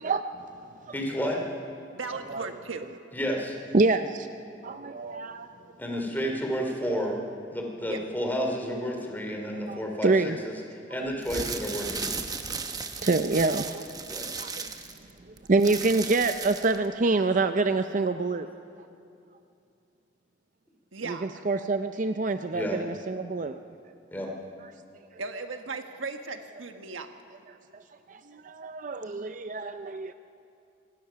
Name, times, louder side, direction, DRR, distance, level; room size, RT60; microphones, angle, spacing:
voice 1, 0.9-1.4 3.1-3.6 5.8-7.2 7.5-10.6 10.9-12.2 14.1-14.3 22.5-22.8 24.1-24.3, equal, 10° left, 1 dB, 2.8 m, -31 dB
voice 2, 1.9-2.9 7.9-8.0 20.9-21.4 25.2-27.1, right 4 dB, 85° right, 6 dB, 1.5 m, -37 dB
voice 3, 3.7-4.1 4.6-5.5 9.7-10.4 13.0-13.8 14.4-14.7 15.5-18.5 21.1-23.6 28.1-30.1, right 3 dB, 40° right, 9 dB, 0.5 m, -26 dB
sound 1, 11.1-16.9, right 4 dB, 20° right, 0.9 m, -35 dB
25.5 x 19.0 x 5.8 m, 2.6 s
head